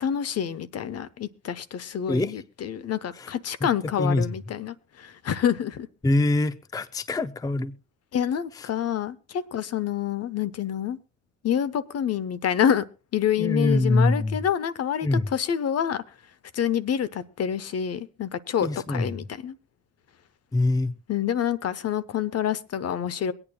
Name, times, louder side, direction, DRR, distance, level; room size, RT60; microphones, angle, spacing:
voice 1, 0.0-5.9 8.1-11.0 11.4-12.8 13.1-16.0 16.5-19.5 21.1-23.3, left 9 dB, 55° left, 16 dB, 0.7 m, -27 dB
voice 2, 2.1-2.4 3.2-3.3 3.6-3.7 4.0-4.3 6.0-7.8 8.6-8.7 13.4-14.4 15.0-15.3 18.6-19.2 20.5-21.0, left 2 dB, 10° left, 14 dB, 0.5 m, -24 dB
23.5 x 8.8 x 2.3 m, 0.32 s
cardioid pair, 90°, 30 cm